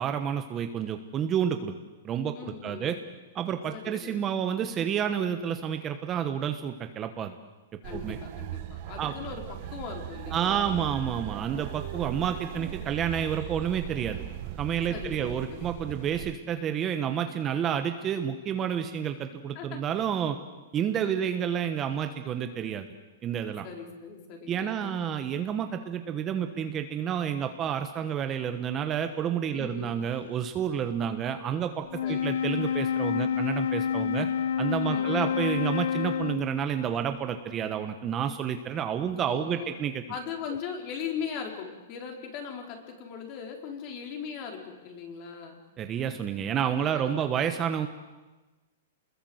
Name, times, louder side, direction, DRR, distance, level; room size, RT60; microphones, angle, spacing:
voice 1, 0.0-1.7 2.0-3.0 3.3-7.4 7.9-8.2 9.0-9.1 10.3-14.2 14.6-20.4 20.7-22.9 23.2-23.6 24.5-34.3 34.6-40.0 45.8-47.9, right 8 dB, 20° right, 7 dB, 1.2 m, -30 dB
voice 2, 2.3-3.0 3.7-4.2 7.8-9.4 9.7-10.8 14.9-15.7 19.5-19.8 21.0-21.3 23.6-24.9 29.5-29.9 32.0-32.3 34.8-35.4 39.2-39.7 40.1-45.6 46.4-46.5 47.0-47.1, left 6 dB, 35° left, 3 dB, 4.4 m, -39 dB
sound 1, 7.8-16.3, right 13 dB, 40° right, 1.2 m, -39 dB
Wind instrument woodwind instrument, 31.9-36.7, left 8 dB, 75° left, 0.8 m, -28 dB
29.5 x 21.5 x 8.0 m, 1.2 s
hypercardioid pair, 165°, 0 cm